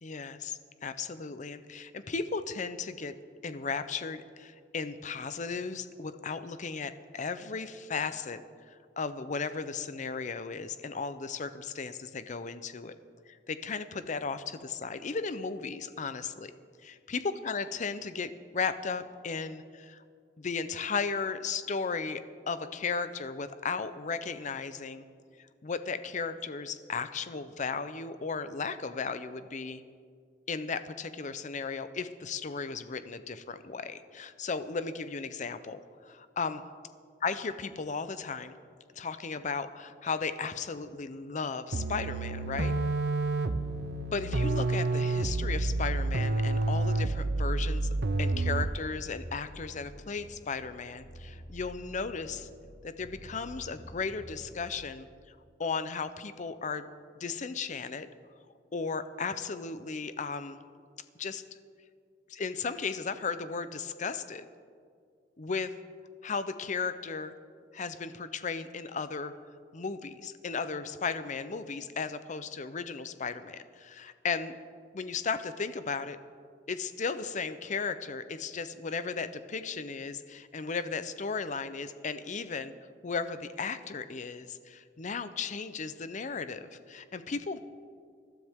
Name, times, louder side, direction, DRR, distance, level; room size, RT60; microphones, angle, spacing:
voice 1, 0.0-3.2 3.4-8.4 9.0-12.9 13.3-16.5 16.8-20.0 20.4-25.0 25.4-29.8 30.5-36.6 37.2-38.6 39.0-42.7 44.1-52.5 52.8-56.9 57.2-58.1 58.7-60.6 61.2-61.4 62.3-64.5 65.4-65.7 66.2-67.3 67.7-69.3 69.7-74.5 74.9-76.2 76.7-82.7 83.0-87.6, left 5 dB, 45° left, 12 dB, 0.6 m, -35 dB
sound 1, 41.7-48.9, right 2 dB, 65° right, 0.6 m, -29 dB
sound 2, 45.1-54.6, equal, 60° left, 1.5 m, -49 dB
20.5 x 12.5 x 3.6 m, 2.1 s
head